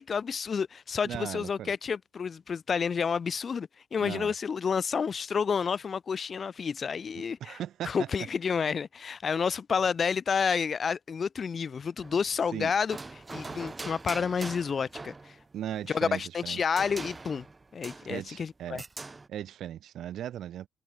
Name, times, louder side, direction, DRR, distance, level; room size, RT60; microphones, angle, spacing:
voice 1, 0.0-7.6 7.8-13.0 13.3-15.4 15.9-17.5 17.7-18.8, left 6 dB, 40° left, 0.3 m, -30 dB
voice 2, 1.0-1.7 4.0-4.3 7.4-8.1 12.5-12.7 15.5-16.6 18.1-18.8 19.3-20.7, right 11 dB, 70° right, 0.8 m, -37 dB
sound 1, 12.0-12.5 12.9-15.5 16.8-18.3 18.8-19.3, right 3 dB, 20° right, 1.3 m, -42 dB
cardioid pair, 110°, 0 cm